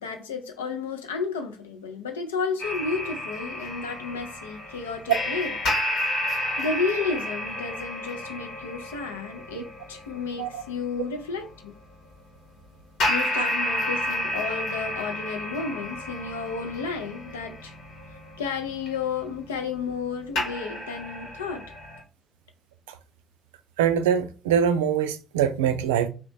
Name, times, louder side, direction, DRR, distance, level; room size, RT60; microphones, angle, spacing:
voice 1, 0.0-5.5 6.2-11.7 13.1-17.7 18.4-21.6, left 5 dB, 80° left, 0.5 m, -32 dB
sound 1, 2.6-11.4 13.0-20.1 20.4-22.0, left 1 dB, 60° left, 1.1 m, -31 dB
voice 2, 23.8-26.1, right 8 dB, 75° right, 0.3 m, -23 dB
2.9 x 2.9 x 3.2 m
figure-of-eight pair, 45°, 0 cm